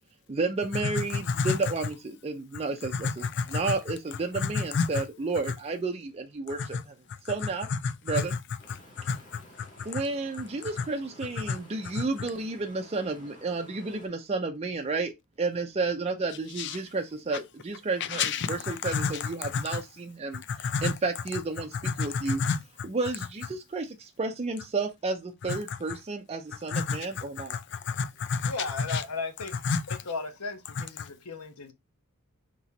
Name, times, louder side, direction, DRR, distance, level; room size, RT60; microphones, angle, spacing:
voice 1, 0.3-3.2 3.5-6.9 7.3-7.7 8.1-8.3 9.9-22.4 22.8-27.6, right 3 dB, 30° right, 0.5 m, -32 dB
voice 2, 1.1-1.6 2.9-3.6 4.4-4.9 6.6-6.7 7.7-8.2 8.7-9.7 9.9-10.0 11.5-11.6 12.0-12.1 16.6-16.8 18.0-19.8 20.5-20.9 21.8-22.6 25.5-25.8 26.7-27.2 27.5-28.5 28.9-29.0 29.6-30.0 30.8-31.1, left 5 dB, 55° left, 0.4 m, -30 dB
sound 1, 8.6-14.1, equal, 35° left, 1.8 m, -52 dB
voice 3, 28.4-29.6 29.9-31.7, left 3 dB, 85° left, 1.1 m, -36 dB
4.2 x 3.0 x 4.0 m
head